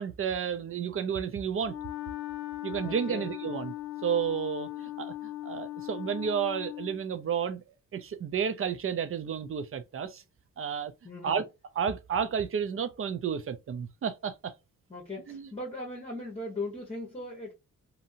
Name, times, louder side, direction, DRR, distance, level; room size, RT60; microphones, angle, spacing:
voice 1, 0.0-1.7 2.6-3.7 4.0-7.6 7.9-10.2 10.6-10.9 11.2-11.4 11.8-14.5 15.3-15.5, right 7 dB, 40° right, 0.5 m, -31 dB
Wind instrument woodwind instrument, 1.6-7.0, left 14 dB, 55° left, 0.8 m, -39 dB
voice 2, 2.8-3.2 11.0-11.4 14.9-17.5, left 2 dB, 20° left, 1.1 m, -38 dB
2.8 x 2.6 x 2.6 m
cardioid pair, 80°, 33 cm